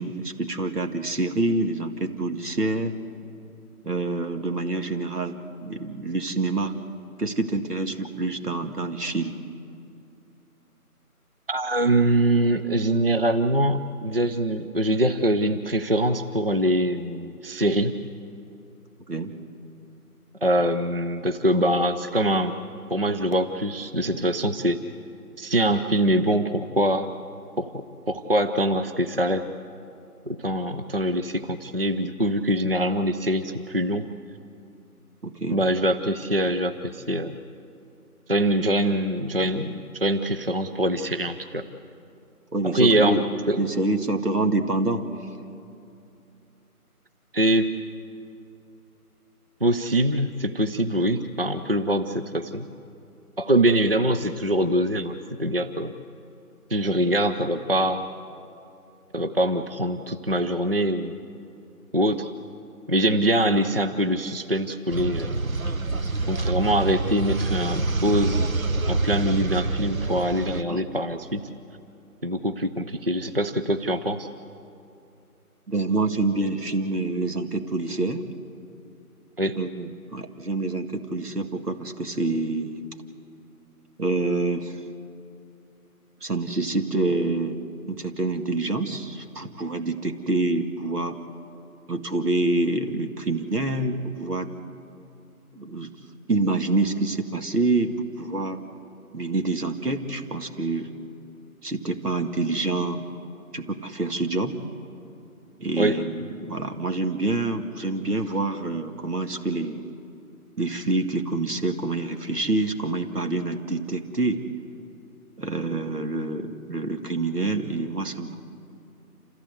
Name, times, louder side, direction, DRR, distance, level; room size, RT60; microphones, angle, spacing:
voice 1, 0.0-2.9 3.8-6.7 7.2-9.4 19.1-19.3 35.2-35.6 42.5-43.2 43.6-45.1 70.7-70.8 75.7-78.2 79.6-82.8 84.0-84.8 86.2-87.6 87.8-91.2 91.9-94.5 95.5-95.9 96.3-98.6 99.1-100.9 101.6-103.0 103.5-104.6 105.6-109.8 110.6-114.4 115.4-118.3, right 2 dB, 85° right, 6 dB, 2.1 m, -27 dB
voice 2, 11.5-18.0 20.4-22.5 22.9-24.8 25.4-27.1 27.6-29.4 30.3-34.1 35.5-37.4 38.3-41.7 42.6-43.2 43.5-43.6 47.3-47.7 49.6-52.7 53.4-55.9 56.7-58.1 59.1-61.2 61.9-62.3 62.9-65.3 66.3-68.5 68.8-71.4 72.2-74.3 79.4-79.6 105.8-106.0, right 1 dB, 40° right, 8 dB, 0.6 m, -23 dB
sound 1, 64.9-70.6, right 3 dB, 60° right, 1.2 m, -26 dB
27.5 x 15.0 x 8.1 m, 2.6 s
figure-of-eight pair, 170°, 46 cm